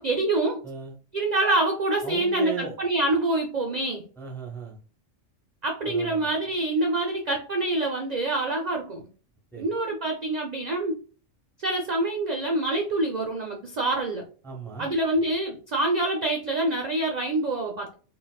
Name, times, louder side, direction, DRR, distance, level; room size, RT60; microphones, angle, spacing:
voice 1, 0.0-0.6 1.1-4.1 5.6-9.1 9.6-11.0 11.6-14.2 14.8-17.9, right 2 dB, 55° right, 1 dB, 0.4 m, -26 dB
voice 2, 0.6-1.0 2.0-2.7 4.2-4.8 5.8-6.3 9.5-9.6 14.4-14.9, right 5 dB, 5° left, -1 dB, 0.4 m, -36 dB
3.7 x 2.2 x 2.3 m, 0.38 s
omnidirectional pair, 1.3 m